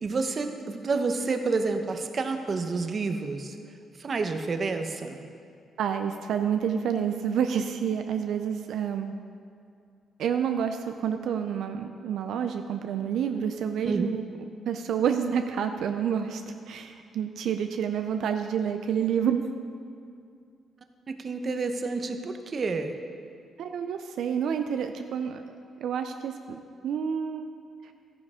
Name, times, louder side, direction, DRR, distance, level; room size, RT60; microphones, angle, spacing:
voice 1, 0.0-3.6 4.0-5.2 13.9-14.1 21.1-22.9, right 4 dB, 35° right, 7 dB, 0.7 m, -29 dB
voice 2, 5.8-9.1 10.2-14.2 14.7-16.4 16.7-19.4 23.6-25.4 25.8-27.5 27.8-27.9, right 8 dB, 75° right, 7 dB, 0.5 m, -28 dB
13.0 x 9.9 x 3.6 m, 2.4 s
cardioid pair, 130°, 0 cm